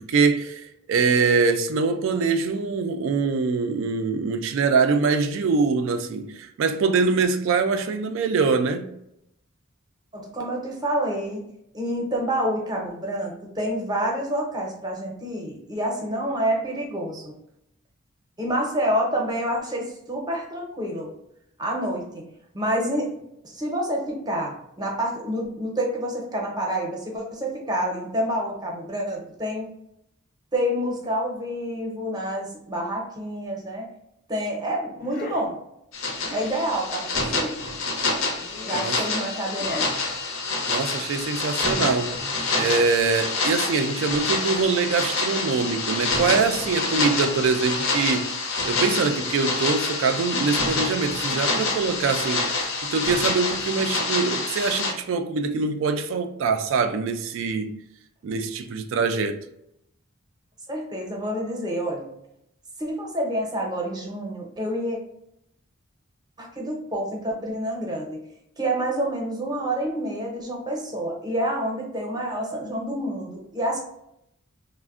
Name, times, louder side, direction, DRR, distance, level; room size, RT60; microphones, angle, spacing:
voice 1, 0.0-8.9 38.8-39.0 40.7-42.2 42.6-57.8 58.2-59.4, right 4 dB, 65° right, 0.3 m, -24 dB
voice 2, 10.1-11.4 11.7-17.3 18.4-21.1 21.6-22.3 22.5-29.7 30.5-33.9 34.3-35.6 36.3-37.6 38.6-39.9 60.7-62.1 62.8-65.0 66.4-68.2 68.6-73.8, equal, 20° right, 0.6 m, -28 dB
sound 1, 35.0-35.4 36.2-36.5 37.3-37.6 38.4-39.0 39.5-40.0, left 3 dB, 45° left, 0.4 m, -37 dB
sound 2, 35.9-54.9, left 3 dB, 85° left, 0.7 m, -27 dB
3.3 x 2.1 x 2.3 m
head